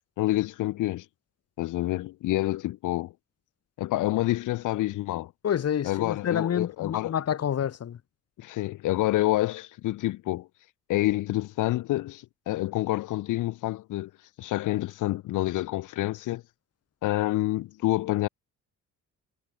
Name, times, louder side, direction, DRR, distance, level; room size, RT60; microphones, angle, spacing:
voice 1, 0.2-1.0 1.6-3.1 3.8-5.3 5.8-7.1 8.4-10.5 10.9-14.1 14.4-16.4 17.0-18.3, left 16 dB, 85° left, 1.3 m, -28 dB
voice 2, 5.4-8.0, left 9 dB, 55° left, 2.5 m, -28 dB
cardioid pair, 90°, 30 cm